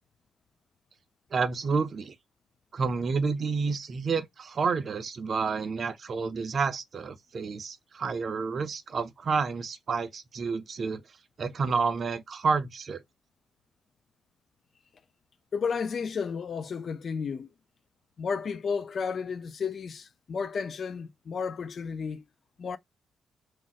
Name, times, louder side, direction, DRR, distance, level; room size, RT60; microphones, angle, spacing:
voice 1, 1.3-2.1 2.7-11.0 11.4-13.0, right 5 dB, 40° right, 0.4 m, -29 dB
voice 2, 15.5-17.5 18.2-22.2 22.6-22.8, left 5 dB, 45° left, 0.3 m, -32 dB
2.5 x 2.0 x 3.9 m
cardioid pair, 145°, 0 cm